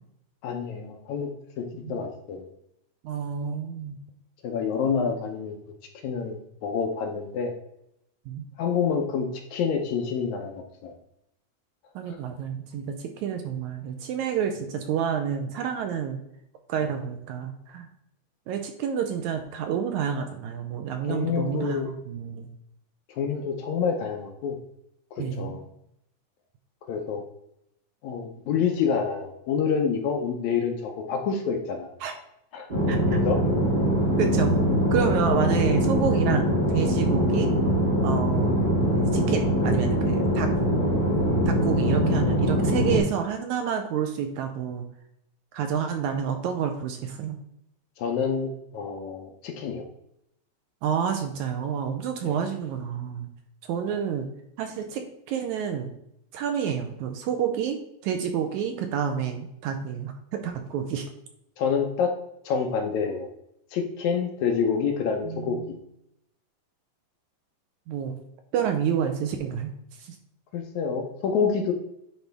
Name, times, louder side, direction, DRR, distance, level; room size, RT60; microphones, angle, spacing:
voice 1, 0.4-1.3 1.6-2.5 4.4-5.6 6.0-7.5 8.6-11.0 12.1-12.2 16.8-16.9 21.1-21.9 23.1-24.6 25.2-25.6 26.9-27.2 28.0-31.9 32.5-32.7 33.3-33.4 48.0-49.9 52.2-52.4 61.6-62.1 62.5-63.3 63.7-65.6 70.5-71.7, left 6 dB, 75° left, 4 dB, 1.9 m, -27 dB
voice 2, 3.0-4.0 8.3-8.5 12.0-16.2 16.7-17.9 18.5-22.5 25.2-25.6 32.0-32.2 32.9-33.2 34.2-34.6 34.9-37.5 38.0-38.6 39.0-40.5 41.5-44.8 45.5-47.4 50.8-53.3 53.7-54.3 54.6-55.0 55.3-55.9 56.3-57.8 58.0-61.1 65.2-65.7 67.9-68.2 68.5-69.7 70.0-70.2, right 8 dB, 75° right, 5 dB, 1.9 m, -29 dB
sound 1, 32.7-43.0, equal, 15° right, 2.4 m, -23 dB
10.5 x 4.2 x 3.4 m, 0.78 s
omnidirectional pair, 3.8 m